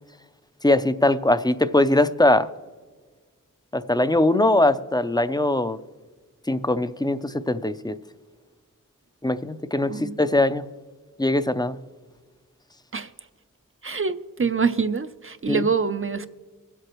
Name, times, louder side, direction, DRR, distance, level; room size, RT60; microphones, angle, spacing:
voice 1, 0.6-2.5 3.7-5.8 6.5-8.0 9.2-10.6 11.2-11.8 15.5-15.6, left 1 dB, 15° left, 0.5 m, -21 dB
voice 2, 13.8-16.3, right 5 dB, 40° right, 0.5 m, -25 dB
23.5 x 8.0 x 3.0 m
wide cardioid pair, 45°, 32 cm